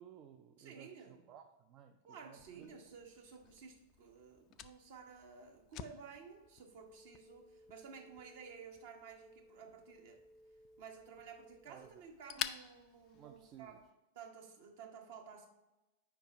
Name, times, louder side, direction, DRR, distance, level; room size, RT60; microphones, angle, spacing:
voice 1, 0.0-2.8 4.5-4.6 11.7-12.0 13.1-13.8, right 9 dB, 35° right, 6 dB, 0.4 m, -57 dB
voice 2, 0.6-1.3 2.1-10.2 10.8-13.8 14.1-15.5, right 6 dB, 55° right, 3 dB, 1.1 m, -54 dB
Fire, 2.4-13.9, left 12 dB, 35° left, 0.3 m, -51 dB
sound 1, 6.8-11.7, equal, 10° right, 0.8 m, -62 dB
4.7 x 4.5 x 5.4 m, 1.0 s
figure-of-eight pair, 90°, 0 cm